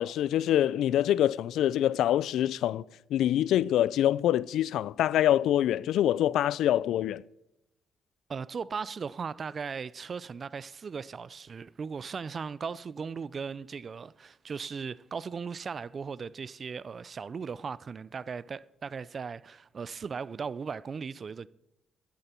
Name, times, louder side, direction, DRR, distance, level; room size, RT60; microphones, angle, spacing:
voice 1, 0.0-2.8 3.1-7.2, left 12 dB, 80° left, 0.3 m, -25 dB
voice 2, 8.3-21.5, right 5 dB, 40° right, 0.4 m, -37 dB
12.0 x 11.5 x 4.4 m
cardioid pair, 90°, 0 cm